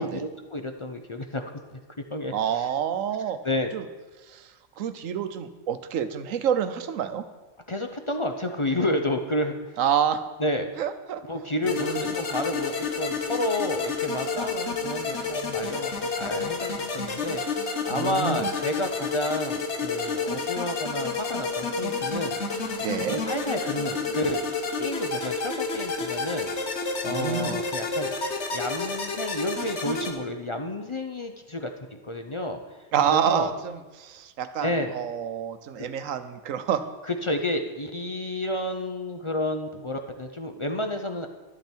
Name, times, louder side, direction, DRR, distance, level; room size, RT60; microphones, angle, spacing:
voice 1, 0.0-1.8 2.1-2.7 3.4-3.7 7.7-9.8 10.4-10.7 11.3-22.4 23.1-26.5 27.0-28.1 28.5-31.7 32.0-32.6 33.1-33.5 34.6-34.9 35.8-35.9 37.1-41.3, left 1 dB, 30° left, 5 dB, 0.6 m, -30 dB
voice 2, 2.3-3.4 3.7-3.8 4.3-4.5 4.8-7.2 9.8-10.2 10.8-11.2 11.7-12.0 17.9-18.5 22.8-23.2 27.0-27.6 32.9-36.8, right 8 dB, 80° right, 11 dB, 1.1 m, -28 dB
sound 1, 11.6-30.1, left 4 dB, 60° left, 1.4 m, -30 dB
11.5 x 10.5 x 4.5 m, 1.2 s
omnidirectional pair, 1.3 m